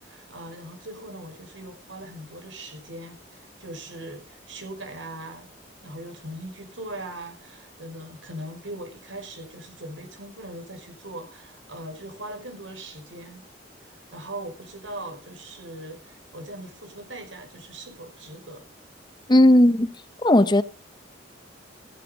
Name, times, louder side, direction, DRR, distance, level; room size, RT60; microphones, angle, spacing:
voice 1, 0.0-5.5 5.8-13.4 13.8-18.6, right 1 dB, 80° right, 5.5 m, -40 dB
voice 2, 19.3-19.9 20.2-20.6, left 1 dB, 20° left, 0.8 m, -16 dB
16.0 x 9.2 x 5.3 m
head